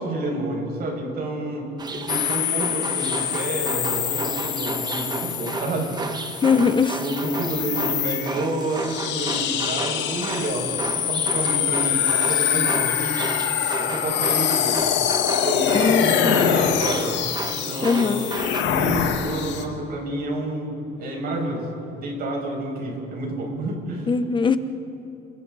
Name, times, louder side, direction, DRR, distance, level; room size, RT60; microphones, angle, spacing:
voice 1, 0.0-6.2 6.5-6.6 7.0-13.2 13.8-14.8 15.4-17.2 17.5-18.2 18.6-24.1, right 1 dB, 50° right, -1 dB, 6.6 m, -29 dB
sound 1, 1.8-18.6, right 3 dB, 20° right, 1.4 m, -33 dB
sound 2, 2.1-19.6, left 9 dB, 65° left, 2.0 m, -25 dB
voice 2, 6.4-7.0 15.7-16.4 17.8-18.3 24.1-24.6, left 5 dB, 25° left, 11 dB, 1.0 m, -21 dB
29.5 x 24.0 x 4.2 m, 3.0 s
cardioid pair, 130°, 20 cm